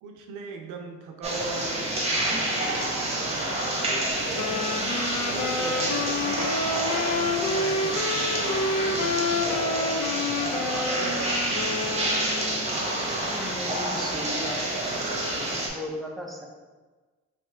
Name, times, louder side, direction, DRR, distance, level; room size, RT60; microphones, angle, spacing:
voice 1, 0.0-4.5 5.1-6.1 6.4-6.7 7.6-9.5 10.4-11.4, right 5 dB, 85° right, 3 dB, 0.6 m, -40 dB
sound 1, 1.2-15.7, right 1 dB, 20° right, 1.0 m, -28 dB
sound 2, 4.1-9.6, left 2 dB, 30° left, 1.1 m, -43 dB
sound 3, 4.3-12.7, left 3 dB, 55° left, 0.5 m, -29 dB
voice 2, 13.2-14.9 15.7-16.5, left 1 dB, ahead, -1 dB, 0.6 m, -36 dB
3.1 x 2.8 x 4.3 m, 1.3 s
cardioid pair, 90°, 30 cm